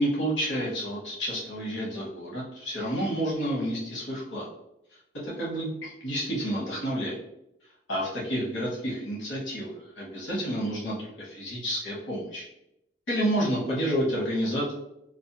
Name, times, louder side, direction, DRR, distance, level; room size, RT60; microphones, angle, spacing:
voice 1, 0.0-4.5 5.1-7.2 7.9-12.4 13.1-14.7, equal, 80° left, -5 dB, 0.9 m, -30 dB
2.4 x 2.1 x 2.7 m, 0.82 s
head